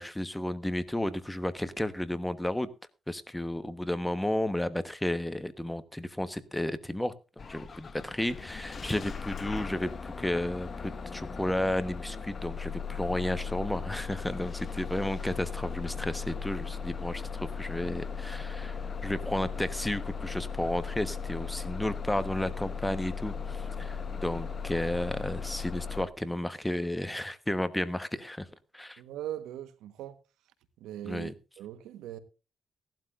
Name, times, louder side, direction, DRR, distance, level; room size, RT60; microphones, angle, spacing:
voice 1, 0.0-2.7 3.1-7.1 7.5-28.5 28.7-29.0 31.0-31.3, left 1 dB, 5° left, 1.2 m, -33 dB
Bus / Engine starting, 7.4-26.1, left 6 dB, 40° left, 0.8 m, -37 dB
voice 2, 29.0-30.2 30.8-31.3 31.6-32.2, right 12 dB, 90° right, 1.3 m, -40 dB
17.5 x 12.0 x 2.6 m
cardioid pair, 90°, 0 cm